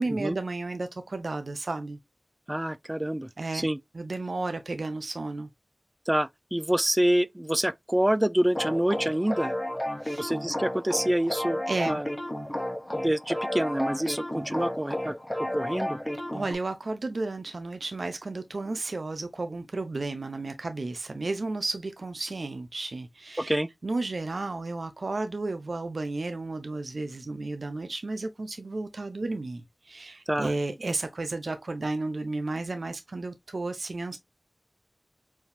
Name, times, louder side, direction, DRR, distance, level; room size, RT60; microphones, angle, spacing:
voice 1, 0.0-2.0 3.4-3.7 3.9-5.5 10.0-10.3 11.7-11.9 16.3-23.6 23.8-34.2, right 2 dB, 75° right, 0.6 m, -33 dB
voice 2, 2.5-3.8 6.1-9.5 10.2-11.6 11.9-12.1 12.9-16.0 23.4-23.7 30.3-30.5, right 1 dB, 15° right, 0.4 m, -27 dB
sound 1, 8.5-16.5, left 1 dB, 20° left, 1.1 m, -32 dB
4.5 x 3.6 x 2.6 m
wide cardioid pair, 50°, 0 cm